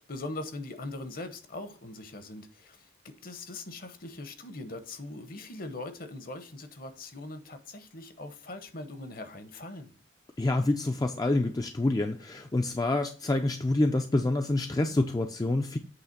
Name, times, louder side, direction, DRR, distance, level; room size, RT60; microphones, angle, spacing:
voice 1, 0.0-9.9, left 2 dB, 50° left, 0.9 m, -41 dB
voice 2, 10.4-15.8, left 2 dB, 20° left, 0.4 m, -27 dB
8.1 x 3.3 x 5.8 m
head